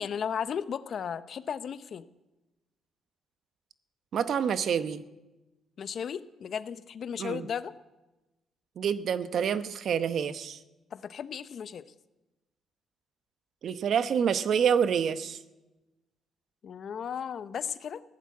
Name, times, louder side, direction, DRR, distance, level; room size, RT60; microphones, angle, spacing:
voice 1, 0.0-2.0 5.8-7.7 10.9-11.9 16.6-18.0, left 7 dB, 60° left, 14 dB, 0.7 m, -35 dB
voice 2, 4.1-5.0 7.2-7.5 8.8-10.6 13.6-15.4, right 7 dB, 60° right, 12 dB, 0.8 m, -27 dB
15.5 x 11.0 x 8.5 m, 1.1 s
cardioid pair, 90°, 0 cm